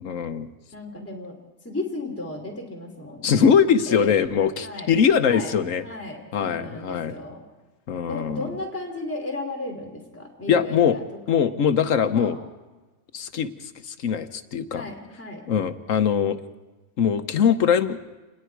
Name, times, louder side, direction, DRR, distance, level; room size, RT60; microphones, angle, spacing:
voice 1, 0.0-0.5 3.2-5.8 6.3-7.1 7.9-8.5 10.5-11.0 11.3-12.4 13.1-14.9 15.5-16.4 17.0-18.0, left 7 dB, 65° left, 10 dB, 1.2 m, -22 dB
voice 2, 0.7-1.3 1.6-3.5 3.9-4.9 5.2-5.5 5.8-7.4 8.1-11.0 12.1-12.3 14.7-15.4, left 2 dB, 10° left, 1 dB, 3.0 m, -34 dB
28.0 x 20.0 x 4.7 m, 1.2 s
omnidirectional pair, 1.5 m